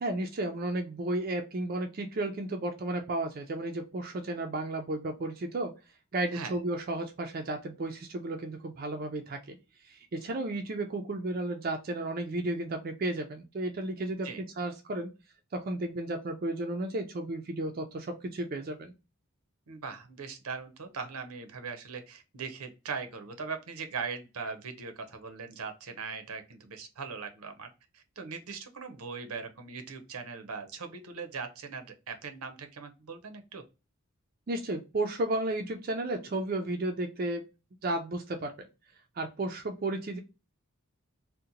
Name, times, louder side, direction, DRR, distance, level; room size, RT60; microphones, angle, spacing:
voice 1, 0.0-5.7 6.1-9.6 9.9-15.1 15.5-18.9 34.5-37.4 37.8-38.5 39.2-40.2, right 2 dB, 40° right, 3 dB, 0.4 m, -33 dB
voice 2, 19.7-33.6, right 5 dB, 85° right, 7 dB, 0.7 m, -40 dB
2.8 x 2.1 x 3.8 m, 0.28 s
head